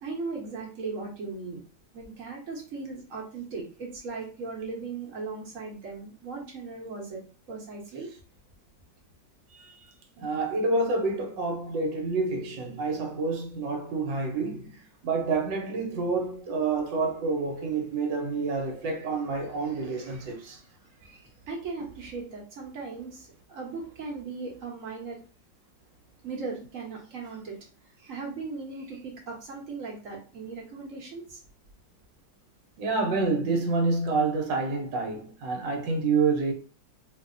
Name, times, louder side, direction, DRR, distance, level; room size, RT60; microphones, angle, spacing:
voice 1, 0.0-1.6 1.9-7.2 7.5-8.1 20.0-20.1 21.0-21.2 21.5-25.2 26.2-27.5 28.0-31.4, right 4 dB, 50° right, 1.3 m, -38 dB
voice 2, 10.2-20.6 32.8-36.5, right 3 dB, 75° right, 1.5 m, -28 dB
3.9 x 2.7 x 2.6 m
omnidirectional pair, 2.0 m